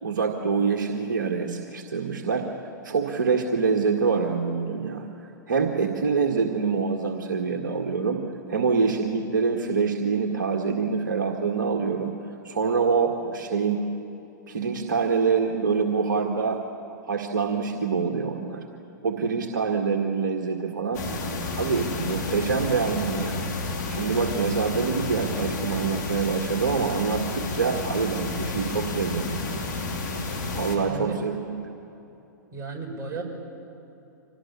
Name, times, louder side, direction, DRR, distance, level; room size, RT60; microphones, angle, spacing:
voice 1, 0.0-2.5 2.8-8.2 8.5-12.2 12.4-13.8 14.5-16.6 17.1-18.6 19.0-21.0 21.5-23.4 23.9-29.8 30.5-31.6, right 5 dB, 70° right, 2 dB, 2.0 m, -25 dB
sound 1, 20.9-30.8, left 3 dB, 60° left, 4.9 m, -31 dB
voice 2, 30.7-31.1 32.5-33.2, right 4 dB, 30° right, 1 dB, 5.2 m, -34 dB
26.0 x 19.0 x 8.5 m, 2.9 s
hypercardioid pair, 115°, 11 cm